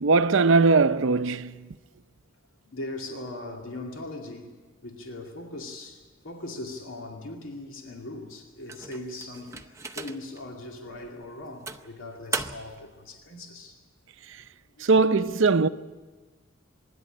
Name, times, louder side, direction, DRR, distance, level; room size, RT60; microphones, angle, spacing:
voice 1, 0.0-1.7 14.8-15.7, right 4 dB, 65° right, 0.6 m, -20 dB
voice 2, 2.6-4.5 4.8-13.8 14.8-14.9, left 2 dB, 75° left, 2.4 m, -40 dB
sound 1, 8.7-10.4 10.9-11.1 11.7-12.9, right 4 dB, 15° right, 0.7 m, -36 dB
25.0 x 11.5 x 9.9 m
head